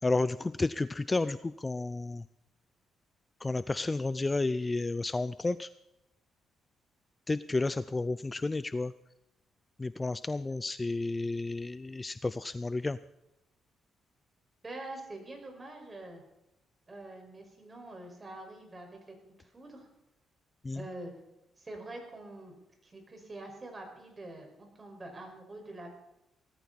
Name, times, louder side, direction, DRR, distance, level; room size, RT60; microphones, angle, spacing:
voice 1, 0.0-2.2 3.4-5.7 7.3-8.9 9.8-13.0 20.6-20.8, left 3 dB, 20° left, 15 dB, 0.4 m, -31 dB
voice 2, 14.6-16.2 16.9-19.9 20.7-21.1 21.6-22.5 22.8-25.9, right 2 dB, 25° right, 3 dB, 5.2 m, -45 dB
18.5 x 14.0 x 4.2 m, 0.90 s
cardioid pair, 90°, 0 cm